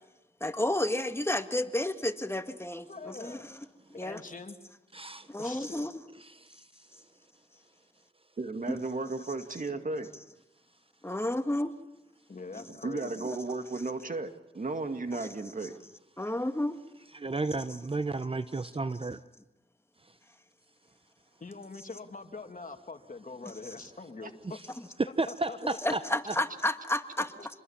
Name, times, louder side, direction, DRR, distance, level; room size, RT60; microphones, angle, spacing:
voice 1, 0.4-3.7 3.9-4.2 5.3-6.0 8.7-8.8 11.0-11.7 12.5-12.7 13.2-13.3 15.1-15.3 16.2-16.8 23.4-23.5 25.8-27.3, left 1 dB, 15° left, 1.7 m, -31 dB
voice 2, 2.8-3.5 4.0-4.6 5.4-5.9 12.3-13.3 21.4-24.3 25.3-26.0, left 3 dB, 50° left, 2.4 m, -43 dB
voice 3, 4.9-5.3 6.2-6.7 17.1-19.2 25.0-26.0 26.3-26.4, right 3 dB, 30° right, 0.9 m, -32 dB
voice 4, 8.4-10.1 12.7-15.7 24.2-24.3, right 3 dB, 50° right, 2.2 m, -34 dB
27.5 x 21.5 x 7.4 m
cardioid pair, 50°, 17 cm